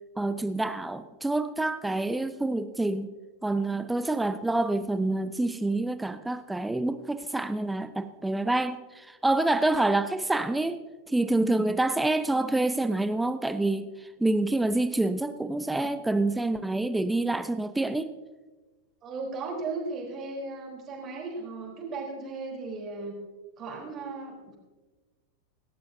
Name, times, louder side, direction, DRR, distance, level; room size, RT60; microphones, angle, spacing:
voice 1, 0.2-3.1 3.4-10.8 11.1-18.1, right 2 dB, 5° right, 12 dB, 0.6 m, -27 dB
voice 2, 19.0-23.2 23.6-24.6, right 3 dB, 30° right, -2 dB, 3.7 m, -36 dB
25.0 x 12.0 x 2.7 m, 1.3 s
figure-of-eight pair, 90°, 0 cm